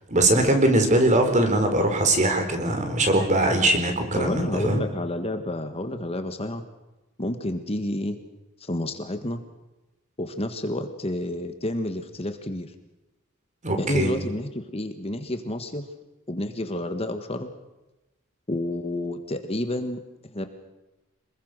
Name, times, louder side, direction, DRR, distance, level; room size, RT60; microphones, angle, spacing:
voice 1, 0.1-4.8 13.6-14.1, right 1 dB, 35° right, 6 dB, 4.3 m, -21 dB
voice 2, 4.1-6.6 7.2-8.2 8.6-9.4 10.2-12.7 13.8-15.8 16.3-17.5 18.5-20.0 20.3-20.5, left 1 dB, 30° left, 7 dB, 1.6 m, -29 dB
27.0 x 21.5 x 6.7 m, 1.0 s
head